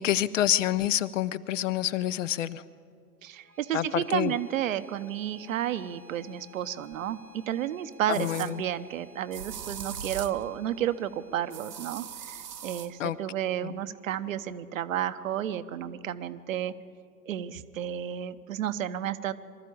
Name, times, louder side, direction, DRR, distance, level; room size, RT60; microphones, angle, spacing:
voice 1, 0.0-2.6 3.7-4.3 8.1-8.6 13.0-13.2 13.6-13.8, left 12 dB, 50° left, 16 dB, 0.7 m, -27 dB
voice 2, 3.2-16.7 17.3-19.3, right 11 dB, 55° right, 12 dB, 1.0 m, -32 dB
sound 1, 3.3-14.3, left 3 dB, 5° left, 1.2 m, -56 dB
sound 2, 6.9-7.0 8.1-8.5 9.3-10.4 11.5-12.9, right 8 dB, 75° right, 1.2 m, -40 dB
23.5 x 13.5 x 8.7 m, 2.2 s
figure-of-eight pair, 100°, 48 cm